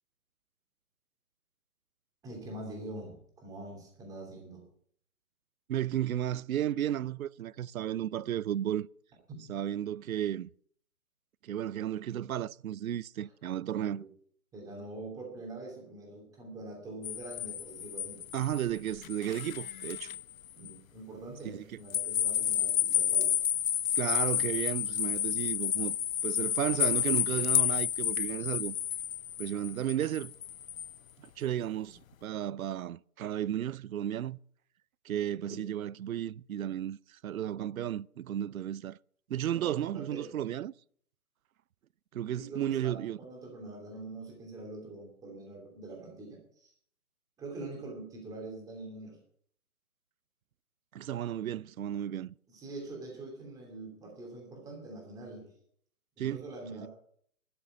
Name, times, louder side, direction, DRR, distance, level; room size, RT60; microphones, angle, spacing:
voice 1, 2.2-4.6 9.3-9.4 13.2-13.3 13.7-14.1 14.5-18.2 20.6-23.4 31.9-32.0 35.5-35.6 39.5-40.3 42.4-46.7 47.4-49.2 52.5-55.5 56.2-56.9, right 2 dB, 10° right, 2.7 m, -44 dB
voice 2, 5.7-8.9 9.5-10.5 11.4-14.0 18.3-20.1 21.4-21.6 24.0-26.0 26.2-28.8 29.4-30.3 31.2-34.4 35.0-39.0 39.3-40.7 42.1-43.2 50.9-52.3 56.2-56.4 56.7-56.9, right 11 dB, 70° right, 0.5 m, -33 dB
sound 1, 17.0-20.2 20.6-20.7 21.9-30.9, left 10 dB, 65° left, 0.6 m, -31 dB
12.5 x 6.6 x 8.9 m
hypercardioid pair, 150°, 44 cm